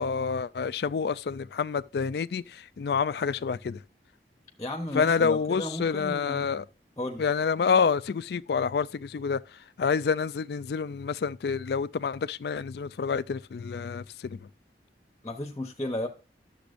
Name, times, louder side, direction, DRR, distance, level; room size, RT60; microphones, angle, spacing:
voice 1, 0.0-3.8 4.9-6.6 7.2-9.4 9.8-14.4, left 5 dB, 65° left, 0.4 m, -28 dB
voice 2, 4.6-6.5 7.0-7.3 15.2-16.1, left 1 dB, 20° left, 0.8 m, -34 dB
12.0 x 7.0 x 2.6 m
head